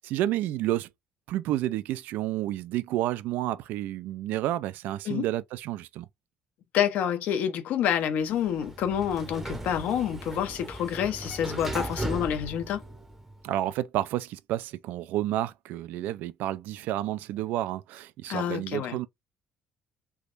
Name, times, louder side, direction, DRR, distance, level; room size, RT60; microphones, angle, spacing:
voice 1, 0.0-0.9 1.3-6.1 13.4-19.1, right 14 dB, 85° right, 0.4 m, -30 dB
voice 2, 6.7-12.8 18.3-19.0, left 9 dB, 65° left, 0.7 m, -28 dB
Sliding door, 8.2-13.4, right 1 dB, 5° right, 0.7 m, -37 dB
3.4 x 3.0 x 2.5 m
cardioid pair, 170°, 3 cm